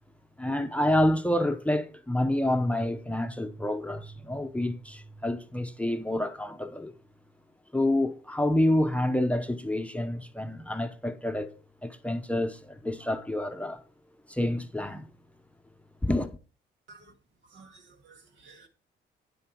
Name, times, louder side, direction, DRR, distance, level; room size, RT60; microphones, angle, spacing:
voice 1, 0.4-6.9 7.7-11.5 11.8-13.8 14.3-15.0 16.0-16.3, left 1 dB, 5° left, 0.8 m, -28 dB
voice 2, 17.5-18.7, right 3 dB, 70° right, 2.2 m, -53 dB
9.3 x 7.6 x 4.5 m
cardioid pair, 90°, 20 cm